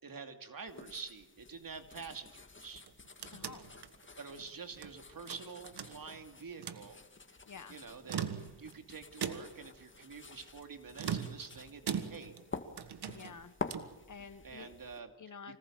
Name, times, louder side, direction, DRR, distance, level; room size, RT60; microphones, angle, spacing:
voice 1, 0.0-2.8 4.2-7.0 7.7-8.2 8.6-12.3 14.4-15.6, right 5 dB, 60° right, 6 dB, 2.8 m, -47 dB
sound 1, 0.7-15.0, left 3 dB, 30° left, 2.2 m, -49 dB
sound 2, 2.7-4.9 5.3-6.2 6.5-6.9 7.9-8.8 9.2-9.7 11.0-12.5 12.8-14.0, right 8 dB, 85° right, 1.6 m, -40 dB
voice 2, 3.3-3.7 7.5-7.8 13.1-13.5 14.1-14.7 15.2-15.6, left 6 dB, 50° left, 12 dB, 1.5 m, -49 dB
25.5 x 19.0 x 7.7 m, 0.98 s
cardioid pair, 75°, 39 cm